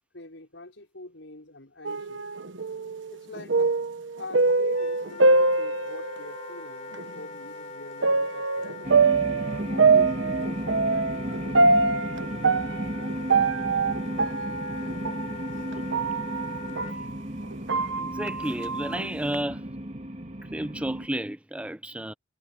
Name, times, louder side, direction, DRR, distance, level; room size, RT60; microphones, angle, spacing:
voice 1, 0.1-2.3 3.1-3.8 4.1-8.8 9.7-12.0, left 2 dB, 80° left, 5.3 m, -44 dB
sound 1, 1.8-6.5 6.9-7.0 8.0-17.1 17.5-19.3, right 3 dB, 85° right, 1.1 m, -24 dB
Wind instrument woodwind instrument, 4.7-16.9, left 2 dB, 40° left, 4.4 m, -41 dB
sound 2, 8.8-21.1, right 1 dB, 35° right, 2.5 m, -34 dB
voice 2, 18.0-19.6 20.5-22.1, right 1 dB, 5° right, 0.5 m, -32 dB
head